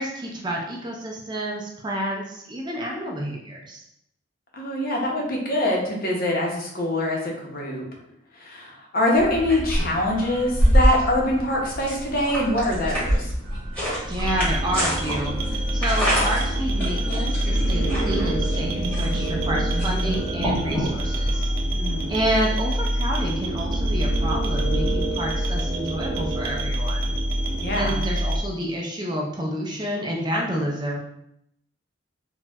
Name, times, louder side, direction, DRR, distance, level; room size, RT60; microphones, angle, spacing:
voice 1, 0.0-3.8 14.0-21.5 22.1-27.1 27.8-31.0, equal, 20° right, -1 dB, 0.4 m, -29 dB
voice 2, 4.5-7.8 8.3-13.3 21.7-22.1 27.6-28.0, left 1 dB, 45° left, -1 dB, 0.6 m, -24 dB
sound 1, 9.1-21.5, equal, 10° left, 1.1 m, -26 dB
sound 2, 14.2-28.4, right 1 dB, 80° right, 0.5 m, -25 dB
4.2 x 2.1 x 2.3 m, 0.77 s
head